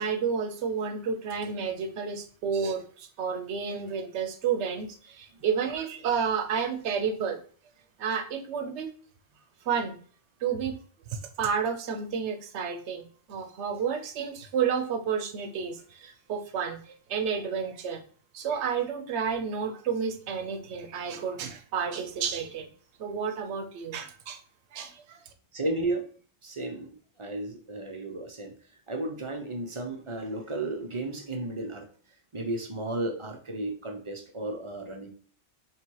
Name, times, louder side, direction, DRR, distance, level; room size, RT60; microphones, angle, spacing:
voice 1, 0.0-7.4 8.0-8.9 9.7-10.0 10.4-10.8 11.4-18.0 18.3-22.7 23.0-24.4 24.7-25.2, right 6 dB, 80° right, 5 dB, 0.9 m, -31 dB
voice 2, 25.5-26.0 26.4-26.9 27.2-28.5 28.9-31.9 32.3-35.1, right 2 dB, 35° right, 4 dB, 0.6 m, -33 dB
3.2 x 2.9 x 4.5 m, 0.43 s
omnidirectional pair, 1.1 m